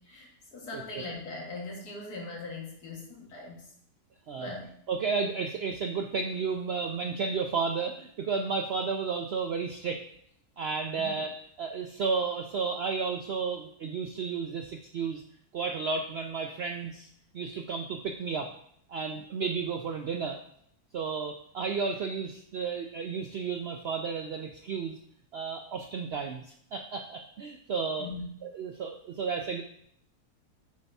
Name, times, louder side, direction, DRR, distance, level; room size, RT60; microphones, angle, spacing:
voice 1, 0.0-3.6 4.4-4.7 11.0-11.1 28.0-28.3, left 3 dB, 85° left, -2 dB, 2.2 m, -40 dB
voice 2, 4.9-10.0 10.6-11.3 11.6-15.2 15.5-17.1 17.3-18.5 18.9-20.4 20.9-25.0 25.3-26.5 26.7-28.1 28.4-29.6, right 5 dB, 80° right, 4 dB, 0.5 m, -32 dB
8.1 x 3.4 x 4.1 m, 0.68 s
omnidirectional pair, 1.6 m